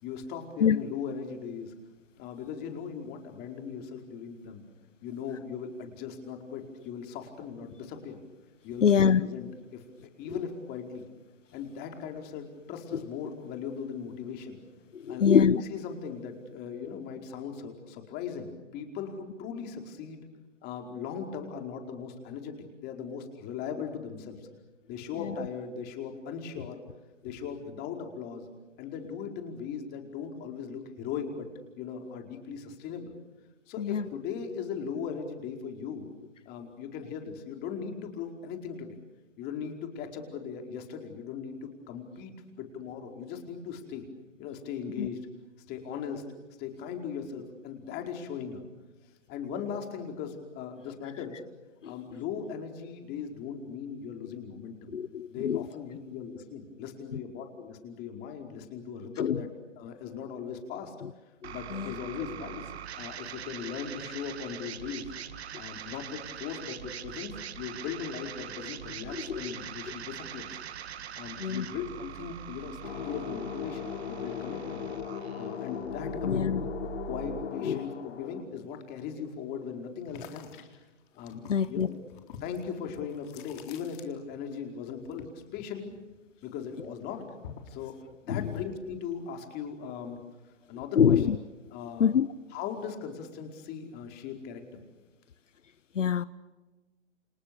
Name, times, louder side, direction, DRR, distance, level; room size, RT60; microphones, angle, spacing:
voice 1, 0.0-1.7 2.2-4.6 5.0-8.2 8.6-9.8 10.2-11.1 11.5-14.6 15.1-15.4 15.7-20.2 20.6-24.5 24.9-26.8 27.2-28.5 28.8-31.5 31.8-33.1 33.7-36.1 36.4-39.0 39.4-44.0 44.4-45.3 45.7-46.2 46.6-48.6 49.3-51.4 51.8-54.9 55.3-59.5 59.8-60.9 61.5-65.1 65.6-70.5 71.1-74.8 75.3-76.6 77.1-80.8 81.1-81.9 82.4-85.9 86.4-87.3 87.7-88.0 88.2-90.2 90.7-91.2 91.7-92.1 92.5-94.6, left 7 dB, 25° left, 4.8 m, -38 dB
voice 2, 8.8-9.2 10.3-10.4 14.9-15.6 25.2-25.3 33.8-34.0 45.0-45.1 51.8-51.9 54.9-55.7 57.1-57.2 59.2-59.4 61.0-61.1 61.4-61.9 69.1-69.5 71.4-71.7 76.2-76.6 77.6-77.8 81.5-81.9 88.3-88.5 91.0-91.4 92.0-92.3 95.9-96.2, left 7 dB, 85° left, 1.0 m, -25 dB
sound 1, 61.4-77.4, right 10 dB, 60° right, 1.9 m, -43 dB
sound 2, 72.8-78.4, left 7 dB, 60° left, 4.0 m, -38 dB
sound 3, 80.1-84.6 84.8-86.5 86.8-87.8, left 8 dB, 40° left, 3.8 m, -49 dB
30.0 x 27.0 x 6.9 m
hypercardioid pair, 140°, 37 cm